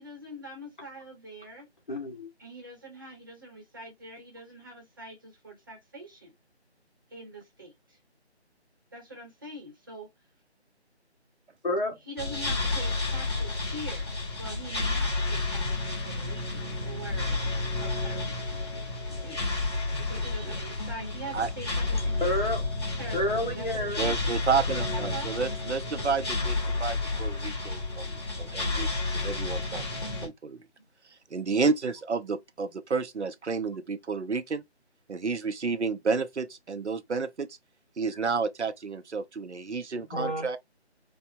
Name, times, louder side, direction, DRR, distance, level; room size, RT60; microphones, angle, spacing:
voice 1, 0.0-1.7 2.4-6.3 7.1-8.0 8.9-10.1 12.1-14.1 14.4-18.5 19.2-19.5 20.1-22.3 22.9-24.4 24.9-25.3 40.0-40.1, right 1 dB, 20° right, 1.0 m, -43 dB
voice 2, 1.9-2.3 11.6-11.9 22.2-22.6 23.1-24.0 40.1-40.6, left 1 dB, 45° left, 1.8 m, -29 dB
sound 1, 12.2-30.3, left 3 dB, 20° left, 1.3 m, -31 dB
voice 3, 24.0-29.8 30.2-30.6 31.3-34.6 35.1-37.5 38.0-40.6, right 5 dB, 80° right, 0.7 m, -31 dB
4.6 x 2.4 x 2.6 m
figure-of-eight pair, 165°, 34 cm